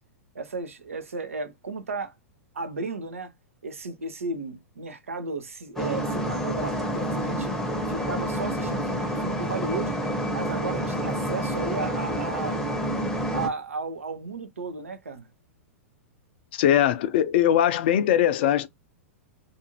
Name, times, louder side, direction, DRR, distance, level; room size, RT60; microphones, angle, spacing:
voice 1, 0.3-2.1 2.5-3.3 3.6-7.5 7.9-10.0 10.3-12.6 13.3-15.3, right 3 dB, 75° right, 0.6 m, -34 dB
sound 1, 5.8-13.5, equal, 5° left, 0.7 m, -28 dB
voice 2, 16.5-18.7, left 10 dB, 50° left, 0.4 m, -21 dB
2.5 x 2.5 x 2.8 m
figure-of-eight pair, 100°, 7 cm